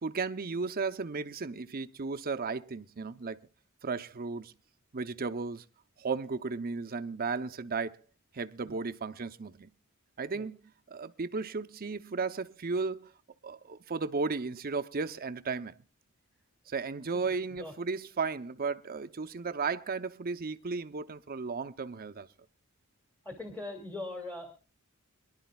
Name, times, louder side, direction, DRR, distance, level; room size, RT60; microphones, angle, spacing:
voice 1, 0.0-3.4 3.8-4.5 4.9-5.6 6.0-8.0 8.3-9.7 10.2-10.6 10.9-13.1 13.4-15.8 16.7-22.3, right 4 dB, 45° right, 0.6 m, -34 dB
voice 2, 17.2-17.7 23.2-24.5, left 2 dB, 10° left, 2.2 m, -41 dB
26.5 x 11.5 x 2.3 m
head